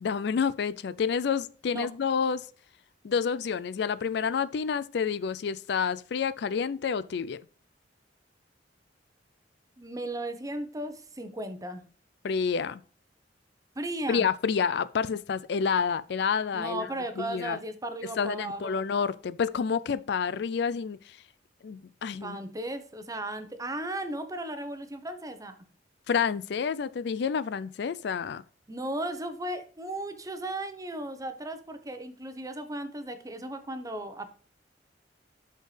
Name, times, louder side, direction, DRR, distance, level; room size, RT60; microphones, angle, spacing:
voice 1, 0.0-2.5 3.0-7.4 12.2-12.8 14.1-16.9 17.2-17.6 18.2-21.2 21.6-22.4 26.1-28.4, left 6 dB, 65° left, 0.4 m, -29 dB
voice 2, 9.8-11.8 13.7-14.2 16.5-18.9 22.2-25.5 28.7-34.3, right 1 dB, 20° right, 0.9 m, -36 dB
13.0 x 4.4 x 3.3 m
head